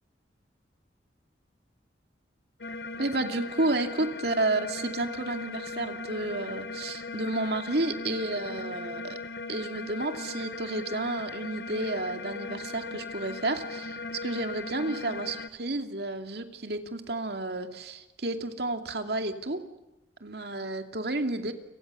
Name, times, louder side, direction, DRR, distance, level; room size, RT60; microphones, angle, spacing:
sound 1, 2.6-15.5, left 3 dB, 65° left, 1.4 m, -38 dB
voice 1, 3.0-9.2 9.5-19.6 20.2-21.5, right 2 dB, 60° right, 6 dB, 2.6 m, -31 dB
30.0 x 25.5 x 6.9 m, 0.96 s
head